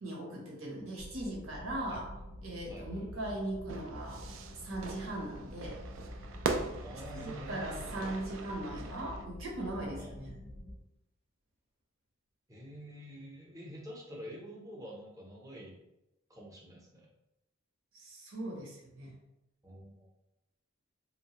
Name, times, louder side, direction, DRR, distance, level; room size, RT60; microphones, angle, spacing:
voice 1, 0.0-2.0 2.4-4.2 4.6-5.8 7.1-10.3 17.9-19.1, right 1 dB, 80° right, -3 dB, 0.9 m, -39 dB
sound 1, 1.0-10.7, equal, 30° left, 0.5 m, -47 dB
voice 2, 2.7-3.0 6.8-8.2 10.0-10.1 12.5-15.7 16.3-17.1 19.6-20.1, equal, 15° right, -3 dB, 0.6 m, -47 dB
Fire / Fireworks, 3.7-9.2, right 4 dB, 65° right, 0.3 m, -40 dB
2.9 x 2.2 x 2.8 m, 0.93 s
head